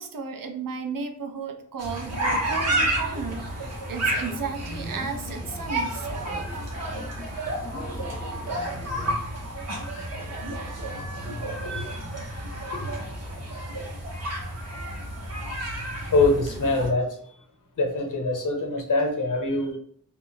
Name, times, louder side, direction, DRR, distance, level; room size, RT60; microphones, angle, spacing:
voice 1, 0.0-6.1 11.7-11.8 14.1-14.4, right 5 dB, 75° right, 4 dB, 0.6 m, -34 dB
sound 1, 1.8-16.9, right 1 dB, 50° right, 0.8 m, -31 dB
sound 2, 2.2-9.1, left 1 dB, 10° left, 0.5 m, -43 dB
voice 2, 11.6-12.0 12.6-12.7 13.5-13.6 16.1-17.1 17.8-19.8, left 2 dB, 65° left, 1 dB, 0.7 m, -24 dB
2.3 x 2.0 x 3.8 m, 0.64 s
wide cardioid pair, 105°, 33 cm